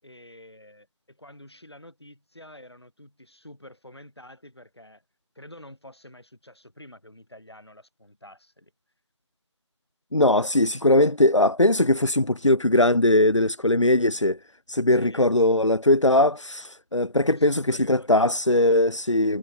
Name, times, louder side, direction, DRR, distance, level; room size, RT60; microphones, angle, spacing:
voice 1, 0.0-5.0 5.4-8.7 14.9-15.4 17.3-18.3, left 1 dB, 60° left, 7.1 m, -47 dB
voice 2, 10.1-14.4 14.7-19.4, left 1 dB, 80° left, 1.2 m, -20 dB
figure-of-eight pair, 175°, 16 cm